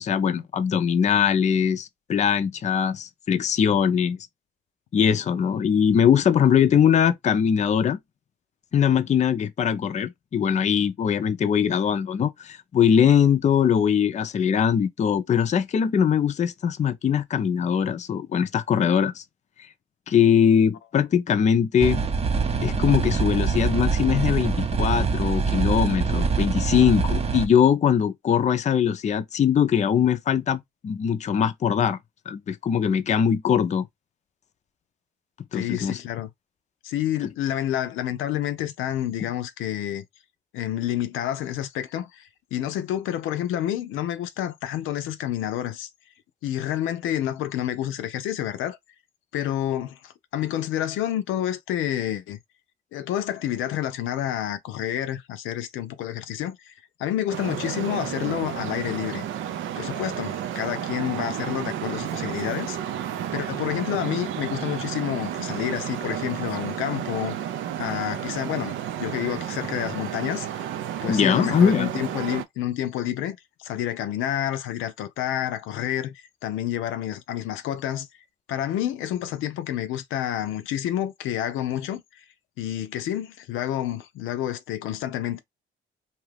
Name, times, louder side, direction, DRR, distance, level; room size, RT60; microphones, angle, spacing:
voice 1, 0.0-4.2 4.9-8.0 8.7-19.2 20.1-22.0 22.6-32.0 32.3-33.9 35.5-36.0 71.1-71.9, left 8 dB, 35° left, 0.5 m, -21 dB
sound 1, 21.8-27.5, right 5 dB, 30° right, 0.6 m, -24 dB
voice 2, 35.5-36.3 36.8-40.0 40.5-45.9 46.4-48.8 49.3-52.4 52.9-56.7 57.0-59.3 59.8-62.8 63.3-67.4 67.8-70.5 71.0-78.1 78.5-82.2 82.6-85.4, left 11 dB, 85° left, 0.5 m, -29 dB
Traffic noise roadway noise, 57.3-72.4, right 10 dB, 80° right, 0.5 m, -32 dB
2.8 x 2.3 x 3.3 m
cardioid pair, 90°, 20 cm